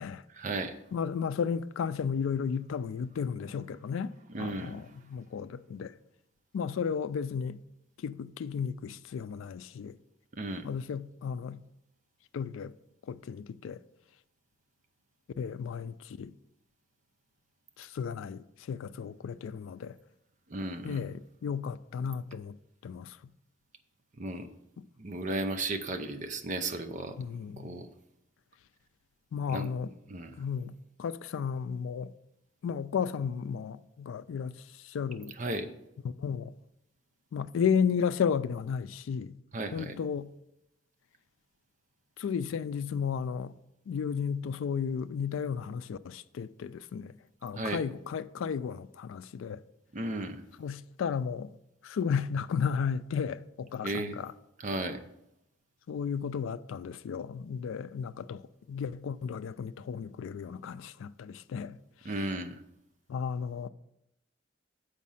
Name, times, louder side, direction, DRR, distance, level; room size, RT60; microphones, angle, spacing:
voice 1, 0.3-0.8 4.3-4.8 10.3-10.7 20.5-21.0 24.2-24.5 25.0-27.2 27.6-27.9 29.5-29.7 30.1-30.3 35.4-35.7 39.5-40.0 47.6-47.8 49.9-50.4 53.8-54.2 54.6-55.0 62.0-62.6, right 2 dB, 40° right, 0.6 m, -34 dB
voice 2, 0.9-5.9 6.5-7.6 8.0-10.0 10.6-11.6 12.3-12.7 13.0-13.8 15.4-16.3 17.8-20.0 20.8-23.2 24.8-24.9 27.2-27.8 29.3-29.9 30.4-30.7 31.0-32.1 32.6-35.3 36.0-36.5 37.3-39.4 39.7-40.3 42.2-43.6 43.9-47.2 47.4-49.6 50.6-51.5 51.8-54.3 55.9-58.4 58.7-61.8 63.1-63.7, left 6 dB, 80° left, 0.3 m, -33 dB
7.4 x 5.1 x 5.5 m
head